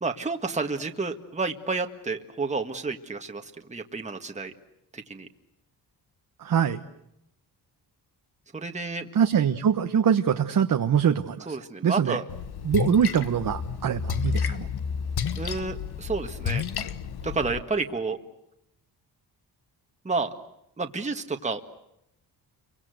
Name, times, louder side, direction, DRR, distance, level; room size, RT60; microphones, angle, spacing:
voice 1, 0.0-4.5 4.9-5.3 8.5-9.1 11.5-12.2 15.4-16.6 17.2-18.2 20.0-20.3 20.8-21.6, right 3 dB, 15° right, 4 dB, 1.9 m, -30 dB
voice 2, 6.4-6.8 9.1-11.6 11.8-12.2 12.6-14.7, right 8 dB, 50° right, 6 dB, 1.3 m, -23 dB
Splash splatter, 12.3-17.6, left 6 dB, 65° left, 1.7 m, -31 dB
30.0 x 24.5 x 8.0 m, 0.81 s
cardioid pair, 125°, 41 cm